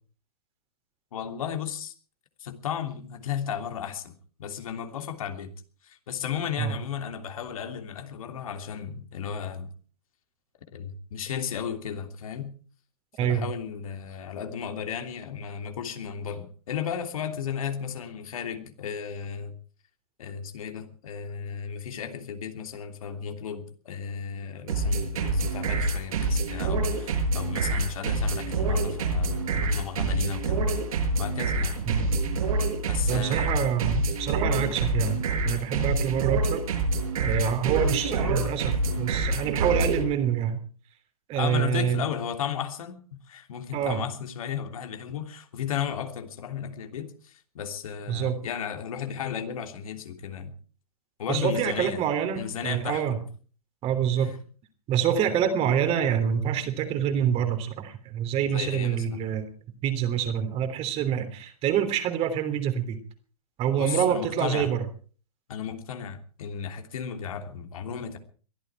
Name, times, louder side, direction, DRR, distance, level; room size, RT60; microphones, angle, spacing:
voice 1, 1.1-1.9 2.4-5.5 5.8-9.7 10.7-12.5 13.2-19.6 20.2-30.6 31.2-31.8 32.9-33.6 34.5-34.7 41.3-50.5 51.2-52.0 52.3-53.2 54.2-54.4 58.4-59.2 63.8-64.7 65.5-68.2, left 8 dB, 65° left, 6 dB, 3.1 m, -34 dB
voice 2, 13.2-13.5 31.9-32.1 33.1-36.7 37.2-40.6 41.3-42.0 43.7-44.0 48.1-48.4 51.3-53.2 53.8-54.3 54.9-59.5 59.8-63.0 63.6-64.8, right 9 dB, 30° right, 8 dB, 3.3 m, -26 dB
sound 1, 24.7-40.0, right 2 dB, 65° right, 7.2 m, -26 dB
22.5 x 13.5 x 4.6 m, 0.41 s
hypercardioid pair, 115°, 19 cm